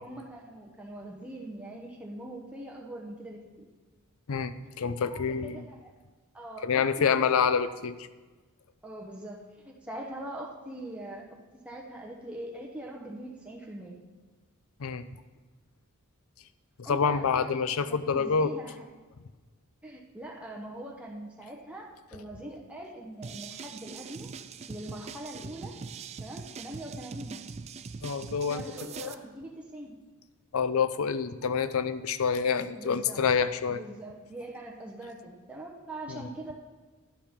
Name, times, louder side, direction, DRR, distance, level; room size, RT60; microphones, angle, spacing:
voice 1, 0.0-3.7 5.1-5.9 6.3-7.8 8.8-11.4 11.6-14.0 16.8-18.9 19.8-24.3 24.7-25.7 26.2-27.5 28.5-29.9 32.7-33.3 33.7-36.5, right 1 dB, 5° right, -2 dB, 0.9 m, -42 dB
voice 2, 4.3-5.7 6.6-8.0 14.8-15.1 16.9-18.5 28.0-28.6 29.0-29.1 30.5-33.8 36.1-36.2, left 6 dB, 70° left, 13 dB, 0.5 m, -27 dB
sound 1, 23.2-29.1, right 5 dB, 30° right, 0.3 m, -42 dB
10.5 x 10.0 x 3.6 m, 1.3 s
head